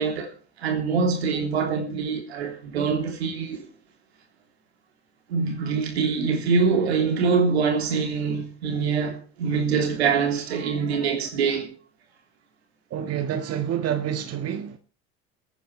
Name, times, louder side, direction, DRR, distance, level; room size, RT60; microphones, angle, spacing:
voice 1, 0.0-3.7 5.3-11.7, right 5 dB, 90° right, 3.3 m, -24 dB
voice 2, 12.9-14.8, right 9 dB, 50° right, 1.6 m, -28 dB
27.5 x 9.4 x 3.3 m
hypercardioid pair, 75°, 31 cm